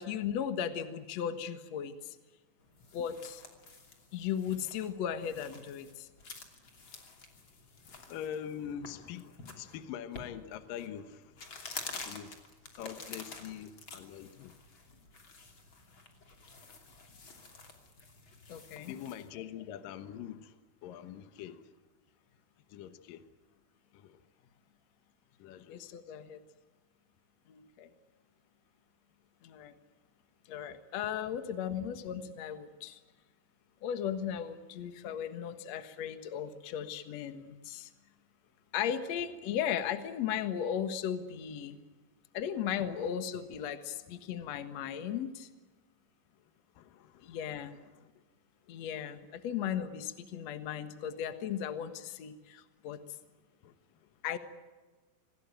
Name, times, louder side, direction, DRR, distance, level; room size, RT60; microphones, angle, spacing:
voice 1, 0.0-2.2 2.9-3.4 4.1-6.1 18.5-18.9 25.7-26.4 27.5-27.9 29.4-29.7 30.5-33.0 33.8-37.9 38.7-41.8 42.3-45.5 47.2-47.7 48.7-53.0 54.2-54.4, left 9 dB, 55° left, 2.3 m, -36 dB
sound 1, 2.6-19.3, left 4 dB, 35° left, 3.3 m, -49 dB
voice 2, 7.9-11.5 12.1-12.4 12.8-14.5 18.9-21.7 22.7-23.2 23.9-24.2 25.4-25.8 30.7-30.8 31.0-31.1 42.8-42.9 46.7-47.4 47.9-48.1 53.6-53.7 54.0-54.1, left 9 dB, 70° left, 2.8 m, -44 dB
26.0 x 19.5 x 9.1 m
omnidirectional pair, 4.2 m